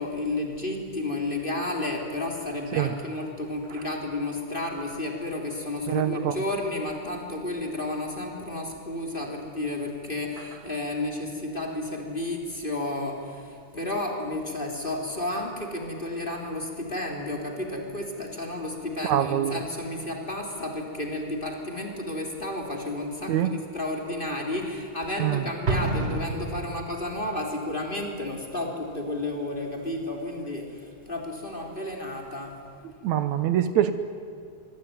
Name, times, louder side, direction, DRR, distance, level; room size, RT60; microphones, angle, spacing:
voice 1, 0.0-32.6, left 1 dB, 15° left, 2 dB, 3.4 m, -32 dB
voice 2, 5.9-6.4 19.0-19.6 23.3-23.5 25.2-25.4 33.0-33.9, right 11 dB, 75° right, 11 dB, 2.2 m, -24 dB
Explosion, 25.7-27.2, right 3 dB, 35° right, 1.2 m, -29 dB
25.0 x 24.5 x 9.4 m, 2.5 s
omnidirectional pair, 3.5 m